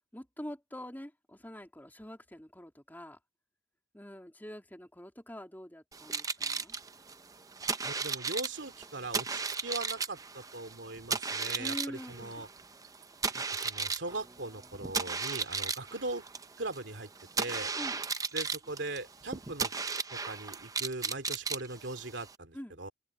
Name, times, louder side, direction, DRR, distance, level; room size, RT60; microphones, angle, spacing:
voice 1, 0.1-3.2 3.9-6.8 11.4-12.4 17.7-18.0 22.5-22.8, equal, 10° left, 3.3 m, -45 dB
sound 1, 5.9-22.4, right 5 dB, 20° right, 0.6 m, -36 dB
voice 2, 7.8-12.5 13.3-16.2 16.6-17.1 17.4-17.7 18.3-19.7 20.1-22.9, right 2 dB, 70° right, 2.8 m, -40 dB
open air
head